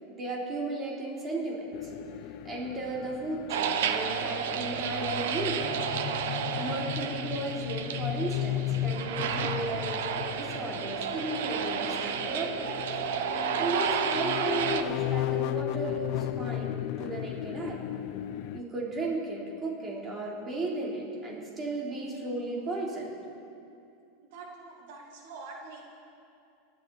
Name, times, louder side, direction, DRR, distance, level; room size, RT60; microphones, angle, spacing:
voice 1, 0.2-1.9 2.4-5.8 6.6-12.8 13.3-17.8 18.5-23.1, right 2 dB, 20° right, -3 dB, 3.3 m, -35 dB
sound 1, 1.7-18.6, left 13 dB, 50° left, 0.6 m, -35 dB
sound 2, 3.5-14.8, right 7 dB, 80° right, 1.0 m, -32 dB
voice 2, 24.3-25.8, right 3 dB, 65° right, 0 dB, 2.0 m, -45 dB
26.5 x 12.0 x 4.1 m, 2.6 s
supercardioid pair, 155°, 0 cm